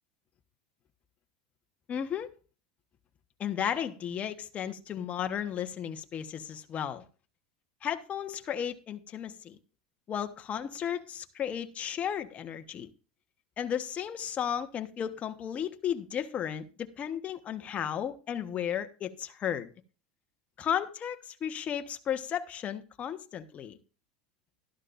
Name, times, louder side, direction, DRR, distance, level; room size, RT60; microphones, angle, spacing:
voice 1, 1.9-2.3 3.4-7.0 7.8-9.6 10.1-12.9 13.6-19.7 20.6-23.8, left 9 dB, 35° left, 1.3 m, -34 dB
13.0 x 12.0 x 2.6 m
hypercardioid pair, 95°, 4 cm